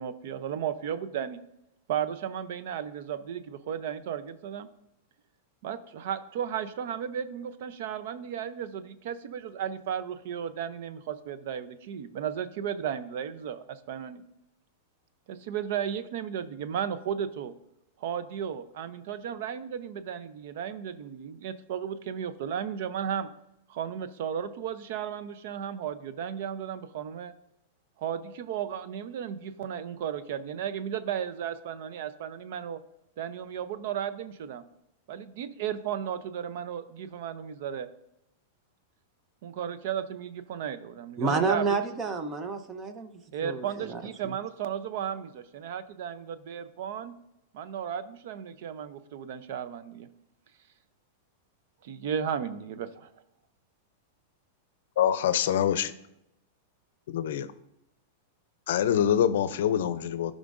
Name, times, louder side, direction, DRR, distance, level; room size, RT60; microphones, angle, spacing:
voice 1, 0.0-1.4 1.9-4.7 5.6-14.2 15.3-17.5 18.0-23.3 23.7-27.3 28.0-32.8 33.2-34.6 35.1-37.9 39.4-41.7 43.3-47.1 47.5-50.1 51.8-53.1, right 8 dB, 60° right, 12 dB, 0.5 m, -34 dB
voice 2, 41.2-43.1 43.4-44.3, right 4 dB, 20° right, 9 dB, 0.7 m, -30 dB
voice 3, 55.0-55.9 57.1-57.5 58.7-60.3, left 9 dB, 70° left, 13 dB, 0.5 m, -25 dB
12.5 x 5.1 x 2.5 m, 0.83 s
supercardioid pair, 150°, 0 cm